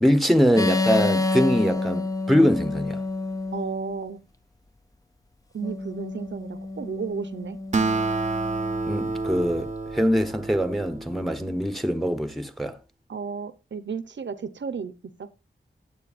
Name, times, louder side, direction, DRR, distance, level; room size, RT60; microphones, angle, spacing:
voice 1, 0.0-3.0 8.9-12.8, equal, ahead, 0.9 m, -23 dB
sound 1, 0.6-4.0 5.6-9.2, left 3 dB, 15° left, 0.6 m, -29 dB
voice 2, 3.5-4.2 5.5-7.6 13.1-14.9 15.2-15.3, right 5 dB, 65° right, 0.8 m, -33 dB
Acoustic guitar, 7.7-11.4, right 3 dB, 35° right, 0.8 m, -28 dB
14.5 x 9.1 x 2.5 m
wide cardioid pair, 115°, 20 cm